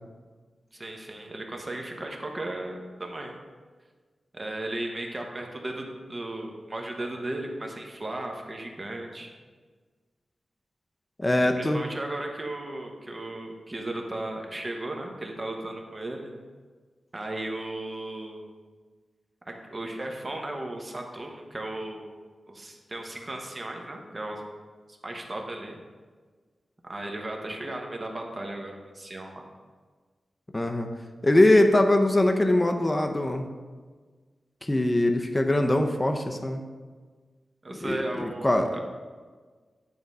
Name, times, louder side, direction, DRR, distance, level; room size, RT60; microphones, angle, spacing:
voice 1, 0.7-3.4 4.3-9.3 11.4-16.3 17.1-18.4 19.5-22.0 22.5-24.4 25.0-25.8 26.8-29.4 37.6-38.8, right 1 dB, 30° right, 1 dB, 1.0 m, -35 dB
voice 2, 11.2-11.8 30.5-30.9 31.2-33.5 34.6-36.6 37.8-38.7, left 1 dB, 15° left, 5 dB, 0.5 m, -22 dB
9.4 x 3.8 x 5.4 m, 1.5 s
wide cardioid pair, 120°, 0 cm